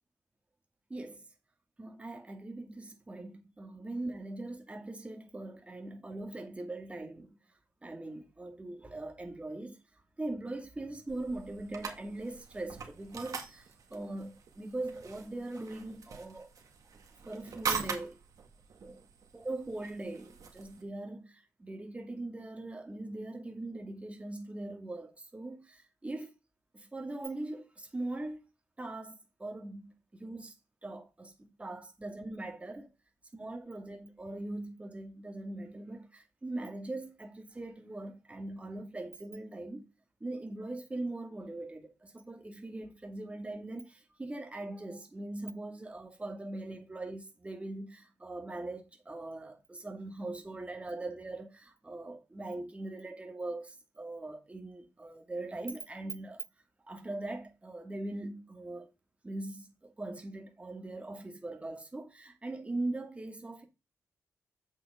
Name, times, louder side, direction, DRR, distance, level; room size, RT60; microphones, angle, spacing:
voice 1, 0.9-1.2 1.8-7.4 7.8-9.8 10.2-16.5 17.3-18.2 18.8-19.0 19.3-26.3 26.7-28.4 28.8-30.5 30.8-31.3 31.6-32.9 33.3-39.9 40.2-56.4 56.8-58.9 59.2-63.6, right 2 dB, 20° right, 2.2 m, -41 dB
sound 1, 11.1-20.8, right 6 dB, 65° right, 1.9 m, -42 dB
7.7 x 7.2 x 3.7 m
cardioid pair, 80°, 6 cm